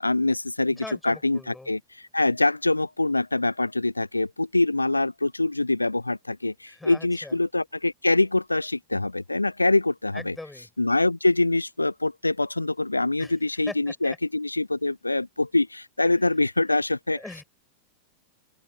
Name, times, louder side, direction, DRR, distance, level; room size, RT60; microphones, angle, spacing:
voice 1, 0.0-10.4 10.8-17.2, left 2 dB, 85° left, 0.7 m, -24 dB
voice 2, 0.8-1.7 6.7-7.4 10.1-10.7 13.2-13.3 13.7-14.2 17.1-17.4, left 2 dB, 5° left, 8.0 m, -41 dB
open air
figure-of-eight pair, 90°, 0 cm